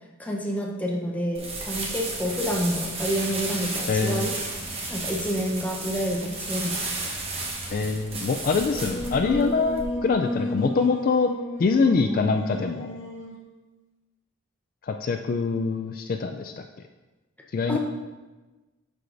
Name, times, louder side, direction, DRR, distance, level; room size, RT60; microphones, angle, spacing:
voice 1, 0.2-4.3 4.9-7.2 17.7-17.8, equal, 10° left, -1 dB, 0.8 m, -28 dB
sound 1, 1.3-9.8, right 2 dB, 30° right, 1.1 m, -33 dB
voice 2, 3.9-4.2 7.7-11.3 11.6-13.0 14.9-16.5 17.5-17.8, left 4 dB, 45° left, 5 dB, 0.3 m, -24 dB
Singing, 8.6-13.4, left 1 dB, 65° left, 1.3 m, -33 dB
11.5 x 4.7 x 2.6 m, 1.2 s
head